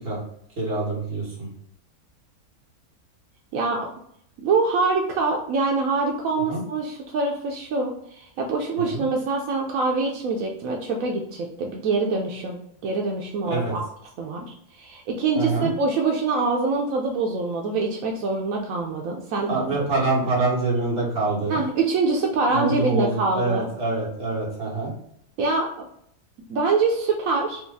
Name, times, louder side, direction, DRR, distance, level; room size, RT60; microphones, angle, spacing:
voice 1, 0.6-1.5 6.5-6.6 8.8-9.0 13.5-13.7 15.3-15.7 19.5-21.6 22.5-24.9, right 3 dB, 45° right, -5 dB, 1.6 m, -25 dB
voice 2, 3.5-3.9 4.4-13.9 14.2-19.8 21.5-23.7 25.4-25.8 26.5-27.6, right 3 dB, 75° right, 1 dB, 1.0 m, -25 dB
5.0 x 2.3 x 3.4 m, 0.70 s
omnidirectional pair, 1.5 m